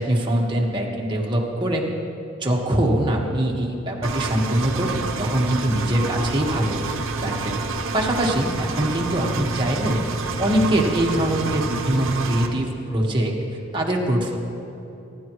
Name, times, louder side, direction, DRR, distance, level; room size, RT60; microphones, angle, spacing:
voice 1, 0.0-1.8 2.4-6.8 7.2-7.6 7.9-10.0 10.4-13.3 13.7-14.4, right 1 dB, 25° right, -1 dB, 1.5 m, -23 dB
Engine, 4.0-12.5, right 3 dB, 85° right, 1.0 m, -28 dB
25.0 x 11.0 x 3.1 m, 2.9 s
head